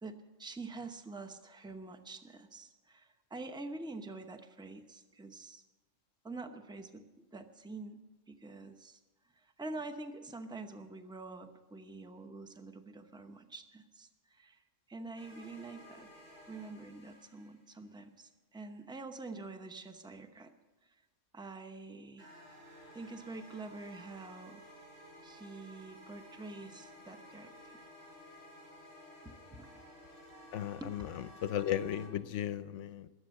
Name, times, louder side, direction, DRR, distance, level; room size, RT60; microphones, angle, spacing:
voice 1, 0.0-5.6 6.2-8.0 8.3-9.0 9.3-16.1 16.5-20.5 20.8-21.0 21.3-22.3 22.9-24.6 25.2-27.8 29.2-29.8 30.8-31.3, right 3 dB, 5° right, 7 dB, 0.6 m, -46 dB
sound 1, 15.2-17.9 22.2-32.1, equal, 80° right, 5.1 m, -54 dB
voice 2, 30.5-31.1 31.4-33.1, left 10 dB, 70° left, 14 dB, 0.9 m, -35 dB
20.5 x 8.0 x 6.4 m, 1.2 s
omnidirectional pair, 1.3 m